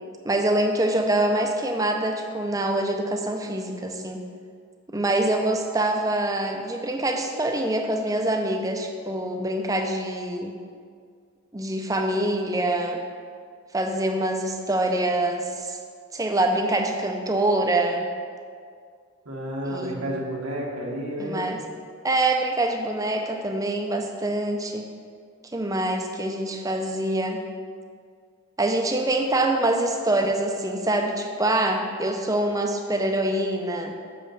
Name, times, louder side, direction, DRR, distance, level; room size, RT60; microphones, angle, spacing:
voice 1, 0.2-4.2 4.9-10.5 11.5-13.0 13.7-15.8 16.1-18.1 19.6-20.0 21.2-21.6 22.0-24.8 25.5-27.4 28.6-33.9, right 1 dB, 15° right, 4 dB, 0.5 m, -25 dB
voice 2, 19.2-21.4, equal, 90° right, -3 dB, 1.5 m, -31 dB
6.0 x 5.5 x 6.6 m, 2.1 s
head